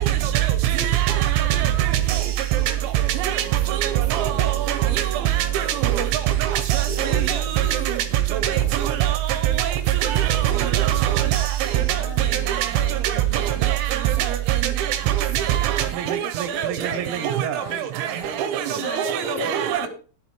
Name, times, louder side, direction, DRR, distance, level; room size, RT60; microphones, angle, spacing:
voice 1, 0.8-1.7 2.1-2.2 3.2-3.4 4.1-4.3 4.7-4.8 5.4-5.6 6.0-6.1 6.4-7.9 8.4-8.6 8.8-9.1 9.6-9.7 10.0-11.4 12.5-12.7 13.6-14.0 14.5-14.9 15.4-16.9 17.2-17.5 18.4-18.6 19.0-19.9, right 12 dB, 80° right, 9 dB, 2.9 m, -22 dB
voice 2, 4.0-4.9 6.8-9.2 9.6-10.4 16.5-19.4, left 2 dB, 10° right, -1 dB, 3.0 m, -40 dB
voice 3, 11.8-13.6 18.8-19.9, left 6 dB, 70° left, 0 dB, 4.4 m, -36 dB
12.5 x 11.0 x 3.0 m, 0.38 s
omnidirectional pair, 5.7 m